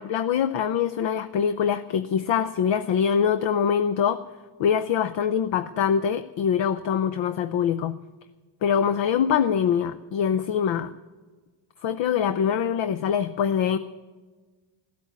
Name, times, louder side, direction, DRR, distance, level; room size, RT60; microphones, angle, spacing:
voice 1, 0.0-4.2 4.6-8.0 8.6-10.9 11.8-13.8, left 8 dB, 60° left, 11 dB, 0.8 m, -24 dB
15.0 x 8.7 x 9.5 m, 1.3 s
cardioid pair, 105°, 49 cm